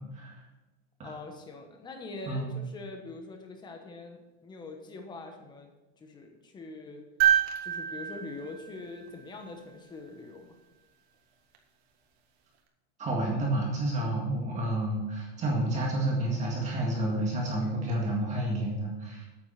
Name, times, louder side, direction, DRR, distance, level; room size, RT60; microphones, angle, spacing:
voice 1, 1.0-7.0 7.6-10.5, left 3 dB, 15° left, 4 dB, 1.1 m, -43 dB
sound 1, 7.2-9.5 11.5-11.6, right 10 dB, 65° right, 1.8 m, -28 dB
voice 2, 13.0-19.3, right 1 dB, 20° right, -2 dB, 1.9 m, -30 dB
9.2 x 8.5 x 5.8 m, 1.1 s
supercardioid pair, 170°, 33 cm